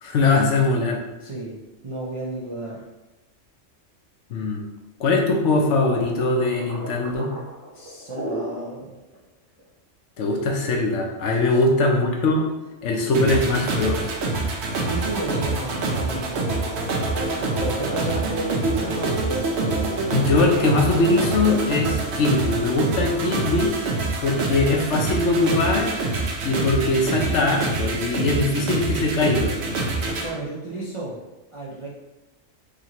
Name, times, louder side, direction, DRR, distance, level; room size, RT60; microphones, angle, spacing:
voice 1, 0.0-1.0 4.3-4.6 5.0-7.3 10.2-12.5 12.8-14.1 20.1-23.7 24.2-25.9 26.4-29.5, left 2 dB, 70° left, 1 dB, 1.0 m, -21 dB
voice 2, 1.2-1.6 1.8-2.8 7.7-8.9 11.4-11.7 14.8-16.7 17.4-19.2 30.0-31.2 31.5-31.9, right 2 dB, 40° right, -6 dB, 0.4 m, -32 dB
sound 1, 5.8-8.7 9.1-9.2 9.6-9.7 10.5-12.7 13.2-13.7 14.1-14.2 14.8-15.7 16.0-17.9 18.3-21.8, right 1 dB, 10° right, 0.9 m, -37 dB
sound 2, 13.1-30.3, right 3 dB, 60° right, 0.9 m, -26 dB
4.9 x 2.8 x 2.9 m, 1.0 s
omnidirectional pair, 1.3 m